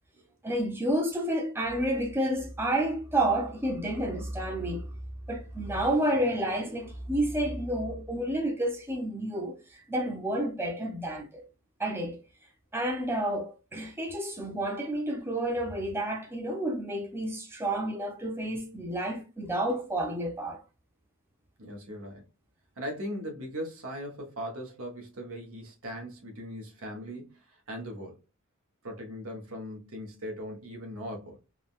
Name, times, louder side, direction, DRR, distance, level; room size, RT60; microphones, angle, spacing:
voice 1, 0.4-4.9 5.3-11.4 11.8-12.2 12.7-20.6, right 1 dB, 10° right, 0.5 m, -30 dB
voice 2, 21.6-22.2 22.8-28.2 28.8-31.4, equal, 75° right, 1.0 m, -39 dB
3.5 x 2.2 x 2.4 m
head